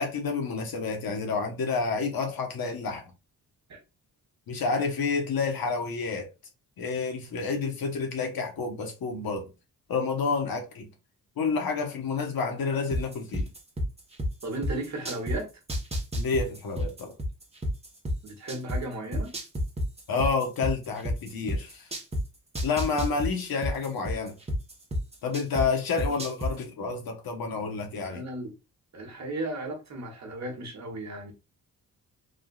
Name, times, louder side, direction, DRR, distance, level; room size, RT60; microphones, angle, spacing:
voice 1, 0.0-3.1 4.5-6.3 6.8-9.5 9.9-10.9 11.4-13.5 16.1-17.1 20.1-21.9 22.6-24.4 25.2-28.2, left 4 dB, 70° left, 1.0 m, -29 dB
sound 1, 12.9-15.4 15.7-18.8 19.1-22.2 22.5-25.6 26.0-26.5, equal, 15° right, 0.9 m, -29 dB
voice 2, 14.4-15.5 18.2-19.3 28.0-28.5 28.9-31.3, right 2 dB, 45° right, 1.2 m, -35 dB
3.6 x 2.4 x 2.3 m
cardioid pair, 90°, 37 cm